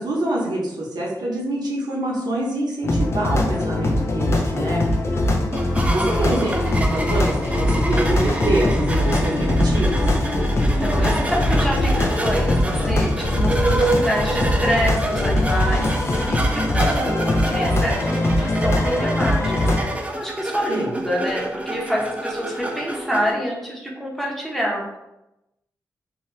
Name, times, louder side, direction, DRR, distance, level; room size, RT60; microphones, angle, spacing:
voice 1, 0.0-4.8 5.9-10.2 20.7-20.9, right 1 dB, 85° right, -3 dB, 0.8 m, -26 dB
sound 1, 2.8-19.8, left 1 dB, 40° left, 0.5 m, -21 dB
voice 2, 4.8-5.4 10.6-25.0, equal, 5° left, -3 dB, 0.8 m, -27 dB
sound 2, 5.5-23.3, right 1 dB, 20° right, 0.4 m, -28 dB
2.7 x 2.2 x 3.2 m, 0.93 s
cardioid pair, 65°, 7 cm